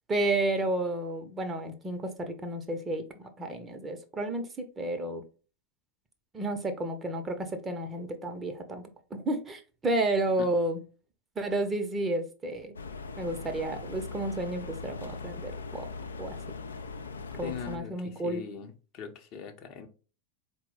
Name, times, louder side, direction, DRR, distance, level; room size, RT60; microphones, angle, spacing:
voice 1, 0.1-5.2 6.3-8.8 9.1-10.8 11.4-12.8 13.2-15.9 16.2-16.4 17.3-18.4, right 2 dB, 20° right, 0.6 m, -31 dB
sound 1, 12.8-17.8, left 4 dB, 75° left, 0.4 m, -40 dB
voice 2, 17.4-19.9, left 7 dB, 40° left, 0.7 m, -41 dB
4.3 x 2.1 x 3.8 m
figure-of-eight pair, 85°, 0 cm